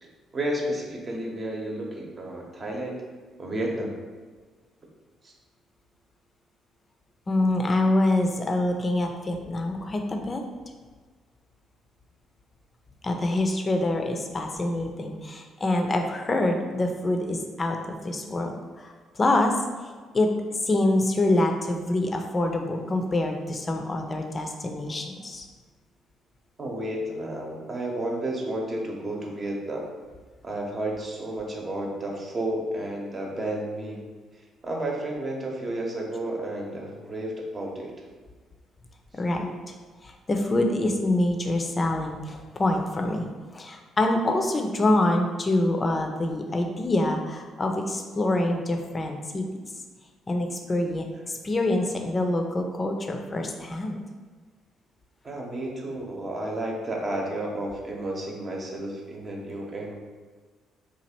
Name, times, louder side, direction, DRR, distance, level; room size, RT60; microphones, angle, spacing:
voice 1, 0.0-3.0 3.4-3.9 5.2-5.3 26.6-29.9 30.4-34.0 34.6-37.9 55.2-60.0, right 1 dB, 40° right, -1 dB, 0.9 m, -32 dB
voice 2, 7.3-10.4 13.0-18.5 18.8-19.5 19.8-25.5 39.2-39.5 40.0-49.4 50.3-54.0, left 1 dB, 35° left, 4 dB, 0.5 m, -26 dB
3.0 x 2.4 x 4.3 m, 1.5 s
hypercardioid pair, 45°, 0 cm